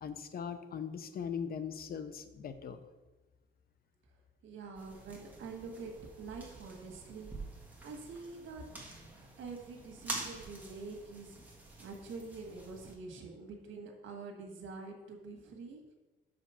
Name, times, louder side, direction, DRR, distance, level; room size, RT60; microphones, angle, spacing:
voice 1, 0.0-2.8, left 7 dB, 50° left, 10 dB, 0.6 m, -40 dB
voice 2, 4.4-8.7 9.4-11.4 11.8-15.8, right 4 dB, 90° right, 2 dB, 1.5 m, -46 dB
sound 1, 4.7-12.9, right 2 dB, 10° right, 1.5 m, -47 dB
6.2 x 5.1 x 5.6 m, 1.1 s
cardioid pair, 130°, 20 cm